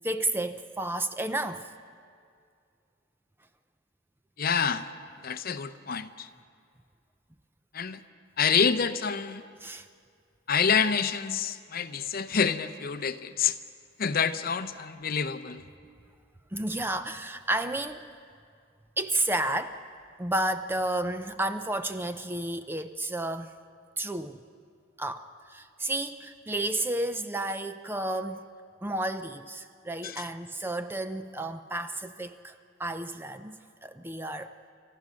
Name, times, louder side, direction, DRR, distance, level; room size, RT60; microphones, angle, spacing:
voice 1, 0.0-1.7 9.6-9.9 16.5-18.1 19.0-19.8 20.2-23.5 24.0-24.4 25.0-28.5 28.8-32.5 32.8-34.5, right 1 dB, 10° right, 0.5 m, -31 dB
voice 2, 4.4-4.9 5.2-6.3 7.7-8.0 8.4-9.4 10.5-13.6 14.0-15.6 30.0-30.3, left 6 dB, 45° left, 0.7 m, -27 dB
30.0 x 14.0 x 6.3 m
head